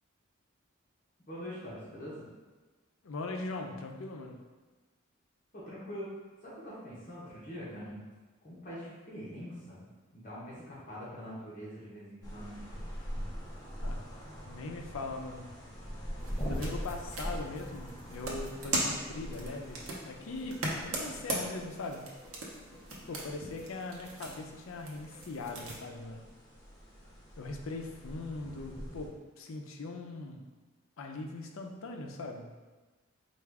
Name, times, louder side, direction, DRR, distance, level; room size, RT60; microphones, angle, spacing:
voice 1, 1.3-2.3 5.5-8.0 8.4-9.9 10.1-12.6, equal, 40° left, -8 dB, 1.0 m, -44 dB
voice 2, 3.0-4.4 13.8-14.2 14.5-15.5 16.4-22.0 23.1-26.3 27.4-30.5 31.0-32.5, left 2 dB, 80° left, 3 dB, 0.5 m, -40 dB
sound 1, 12.2-29.1, equal, 20° left, 0.7 m, -43 dB
sound 2, 16.2-25.8, right 2 dB, 85° right, 0.8 m, -40 dB
4.7 x 2.4 x 3.4 m, 1.3 s
head